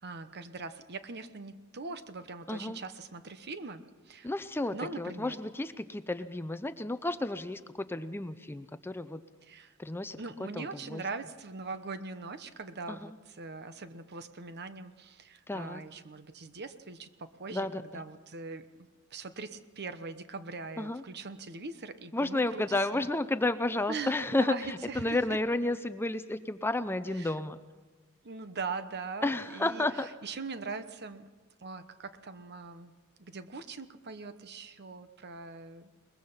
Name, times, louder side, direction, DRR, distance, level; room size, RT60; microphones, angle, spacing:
voice 1, 0.0-4.3 4.7-5.4 9.5-9.7 10.2-22.6 22.9-23.0 23.9-25.2 27.2-27.3 28.2-29.9 30.2-31.3 31.6-32.9 33.2-35.9, right 4 dB, 50° right, 11 dB, 1.1 m, -41 dB
voice 2, 2.5-2.8 4.2-9.2 9.8-10.2 10.5-11.0 12.9-13.2 15.5-15.8 17.5-18.0 20.8-21.0 22.1-27.6 29.2-30.1, left 2 dB, 10° left, 11 dB, 0.5 m, -32 dB
22.5 x 21.0 x 5.7 m, 1.3 s
head